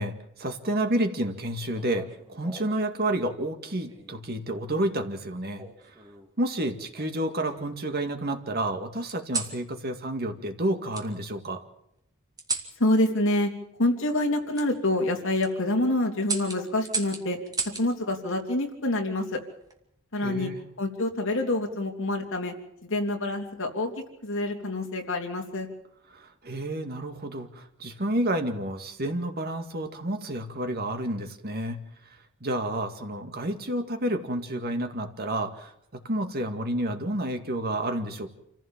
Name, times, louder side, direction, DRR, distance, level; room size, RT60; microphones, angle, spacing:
voice 1, 0.0-5.9 6.4-11.6 20.2-20.6 26.1-31.8 32.4-35.7 36.0-38.3, right 1 dB, 45° right, 6 dB, 2.2 m, -30 dB
sound 1, 1.7-2.8 3.9-4.3 5.6-6.3 6.9-7.8 9.1-9.6 10.9-11.1 12.4-12.7 14.5-14.7 15.2-15.5 16.2-17.9 19.4-19.8, right 4 dB, 15° right, 2.5 m, -35 dB
voice 2, 12.8-13.5 13.8-17.4 17.8-19.4 20.1-20.5 20.8-22.5 22.8-25.7, left 1 dB, 60° left, 2 dB, 3.3 m, -27 dB
28.0 x 15.5 x 7.4 m, 0.78 s
head